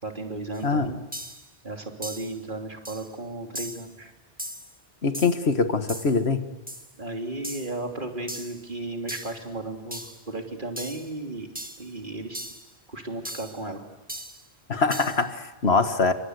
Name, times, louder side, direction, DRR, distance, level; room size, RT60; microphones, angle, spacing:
voice 1, 0.0-1.1 1.6-4.1 7.0-11.5 11.8-12.4 12.9-13.8, right 2 dB, 50° right, 3 dB, 3.2 m, -35 dB
sound 1, 0.5-0.6 1.1-1.5 2.0-2.4 2.8-3.1 3.5-3.9 4.4-4.7 5.1-5.5 5.9-6.2 6.7-6.9 7.4-7.8 8.3-8.6 9.1-9.4 9.9-10.2 10.8-11.1 11.6-11.9 12.3-12.7 13.2-13.6 14.1-14.4 14.9-15.2, right 1 dB, 10° right, 1.8 m, -38 dB
voice 2, 0.6-1.0 5.0-6.5 14.7-16.1, left 4 dB, 70° left, 9 dB, 1.9 m, -23 dB
29.0 x 24.5 x 8.1 m, 1.0 s
omnidirectional pair, 1.1 m